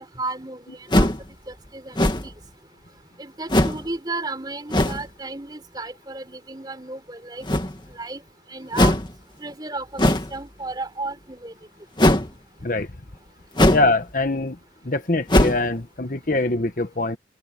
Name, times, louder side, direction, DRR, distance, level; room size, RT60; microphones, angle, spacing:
voice 1, 0.2-0.6 0.9-1.1 1.7-2.3 3.2-7.5 8.0-8.2 8.5-9.0 9.4-11.5, right 2 dB, 25° right, 4.0 m, -33 dB
sound 1, 0.9-1.3 1.9-2.4 3.5-3.9 4.7-5.0 7.4-7.9 8.7-9.1 10.0-10.4 12.0-12.3 13.6-14.0 14.3-14.4 15.3-15.7, left 1 dB, 25° left, 2.1 m, -19 dB
voice 2, 13.7-14.6 14.8-17.2, left 2 dB, 50° left, 1.3 m, -23 dB
open air
head